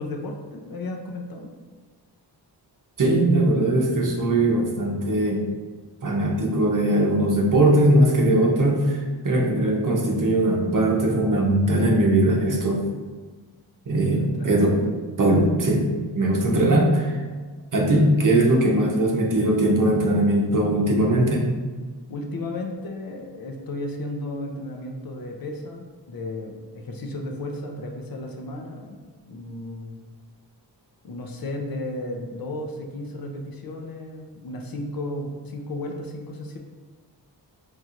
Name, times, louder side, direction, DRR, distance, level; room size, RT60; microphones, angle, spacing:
voice 1, 0.0-1.5 14.1-14.7 22.1-29.0 29.2-30.0 31.0-36.6, left 2 dB, 55° left, 2 dB, 0.6 m, -34 dB
voice 2, 3.0-5.4 6.0-12.8 13.9-14.8 15.2-15.9 16.1-17.2 17.7-21.5, right 1 dB, 50° right, 0 dB, 0.8 m, -20 dB
4.3 x 3.1 x 2.5 m, 1.4 s
wide cardioid pair, 85°, 42 cm